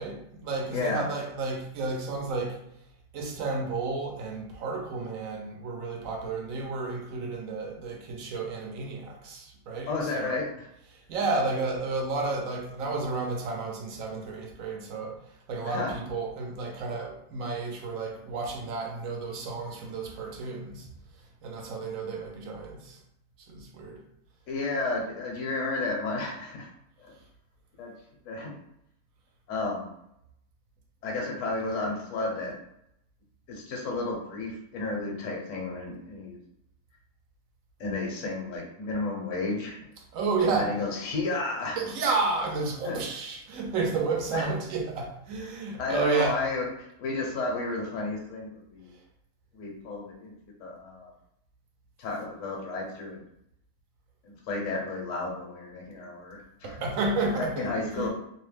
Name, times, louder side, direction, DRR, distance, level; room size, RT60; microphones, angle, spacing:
voice 1, 0.0-2.6 3.1-10.3 10.9-15.2 15.5-20.9 21.4-23.0 23.5-24.0 40.1-40.7 41.8-46.4 56.6-58.1, right 3 dB, 80° right, 1 dB, 1.1 m, -31 dB
voice 2, 0.7-1.1 9.9-10.7 15.6-15.9 24.5-26.7 27.0-27.1 27.8-27.9 28.2-28.5 29.5-29.9 31.0-32.6 33.5-36.4 37.8-39.8 40.5-41.8 42.8-43.0 44.3-44.5 45.8-48.9 49.5-50.3 50.6-51.1 52.0-53.2 54.2-56.8 57.2-58.1, left 3 dB, 70° left, -1 dB, 1.1 m, -32 dB
2.8 x 2.1 x 3.2 m, 0.78 s
omnidirectional pair, 1.4 m